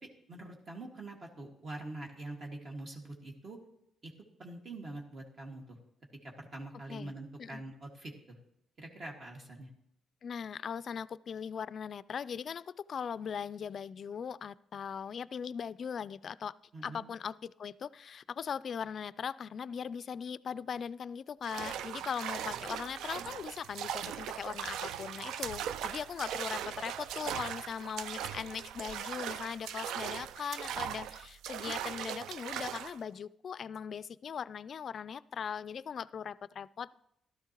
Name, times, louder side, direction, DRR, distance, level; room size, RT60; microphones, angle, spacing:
voice 1, 0.0-3.6 4.0-4.1 4.4-5.8 6.2-8.4 8.8-9.7 16.7-17.1, right 2 dB, 45° right, 0 dB, 1.8 m, -45 dB
voice 2, 10.2-16.6 16.8-37.0, left 7 dB, 55° left, 18 dB, 0.3 m, -40 dB
sound 1, 21.4-33.0, right 9 dB, 85° right, 0.4 m, -39 dB
14.0 x 12.0 x 3.0 m, 0.78 s
cardioid pair, 90°, 0 cm